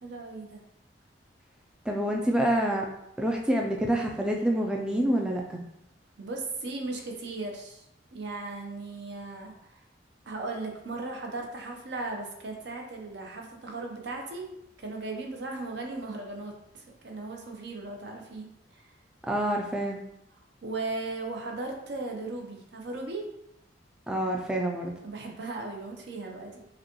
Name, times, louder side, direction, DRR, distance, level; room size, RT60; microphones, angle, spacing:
voice 1, 0.0-0.6 6.2-7.8 8.1-9.8 10.3-18.9 20.6-23.3 25.0-26.7, right 3 dB, 65° right, 1 dB, 0.7 m, -37 dB
voice 2, 1.9-2.9 3.2-5.6 19.2-20.0 24.1-24.9, right 1 dB, 5° right, 0 dB, 0.3 m, -27 dB
4.9 x 2.2 x 2.9 m, 0.81 s
head